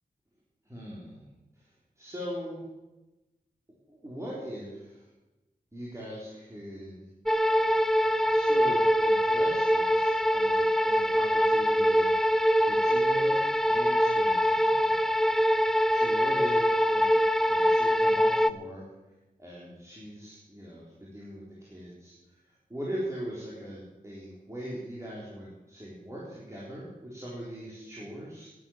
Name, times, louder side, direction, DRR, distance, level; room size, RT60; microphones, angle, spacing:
voice 1, 0.6-1.2 1.5-1.7 2.0-2.6 3.9-5.1 5.7-7.1 8.2-12.1 12.6-15.1 15.9-17.1 17.5-18.9 19.4-28.5, equal, 20° right, -6 dB, 3.9 m, -41 dB
sound 1, 7.3-18.5, equal, ahead, 0.5 m, -24 dB
11.5 x 11.5 x 7.3 m, 1.0 s
wide cardioid pair, 80°, 15 cm